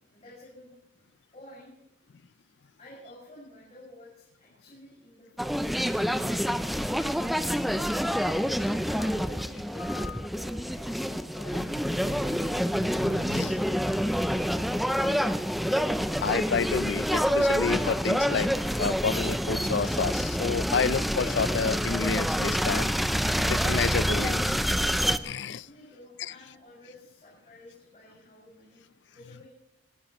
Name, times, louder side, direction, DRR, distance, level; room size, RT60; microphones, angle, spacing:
voice 1, 0.1-0.7 0.9-1.7 2.8-5.6 6.1-7.8 8.8-11.4 14.3-15.3 25.6-29.5, left 1 dB, 35° left, 6.3 m, -51 dB
sound 1, 5.4-25.2, equal, ahead, 0.5 m, -27 dB
voice 2, 11.5-11.9 12.3-13.7 16.0-18.5 18.8-22.9 23.3-24.6 25.2-25.7, left 5 dB, 70° left, 0.5 m, -30 dB
24.0 x 17.0 x 3.1 m
head